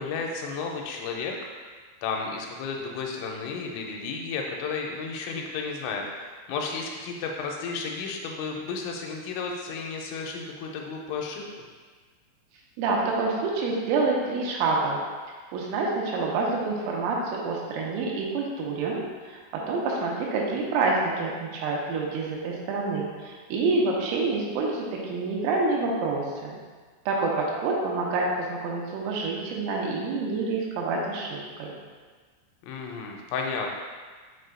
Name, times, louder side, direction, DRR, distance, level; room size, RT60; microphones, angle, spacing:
voice 1, 0.0-1.3 1.7-11.4 32.6-33.7, left 4 dB, 85° left, 1 dB, 3.3 m, -33 dB
voice 2, 12.8-15.0 15.5-19.4 19.7-26.6 27.1-31.7, right 3 dB, 85° right, -2 dB, 3.5 m, -27 dB
6.5 x 6.2 x 2.3 m, 1.5 s
omnidirectional pair, 5.8 m